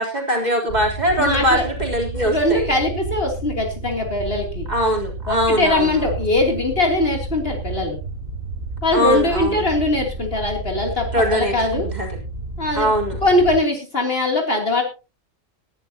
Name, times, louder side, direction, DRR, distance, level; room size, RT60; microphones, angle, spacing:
voice 1, 0.0-2.7 4.7-6.1 8.9-9.7 11.1-12.1 12.8-13.2, equal, 30° right, -1 dB, 3.7 m, -22 dB
sound 1, 0.7-13.6, right 2 dB, 90° right, 3.3 m, -31 dB
voice 2, 1.2-1.6 2.1-4.7 5.3-8.0 8.8-11.9 12.6-12.9 13.2-14.8, left 2 dB, 45° left, 2 dB, 3.2 m, -21 dB
20.0 x 11.5 x 2.8 m, 0.31 s
omnidirectional pair, 1.4 m